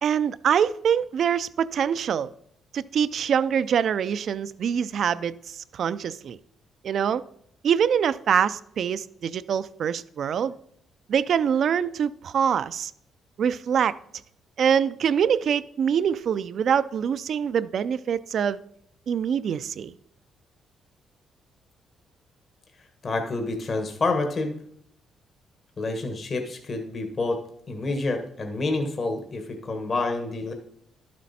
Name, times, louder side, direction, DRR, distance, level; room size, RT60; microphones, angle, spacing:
voice 1, 0.0-2.3 2.7-6.4 6.8-7.2 7.6-10.5 11.1-12.9 13.4-13.9 14.6-18.6 19.1-20.0, right 8 dB, 60° right, 0.4 m, -24 dB
voice 2, 23.0-24.5 25.8-27.4 27.7-30.5, left 3 dB, 45° left, 1.4 m, -28 dB
11.5 x 7.5 x 4.2 m
cardioid pair, 90°, 0 cm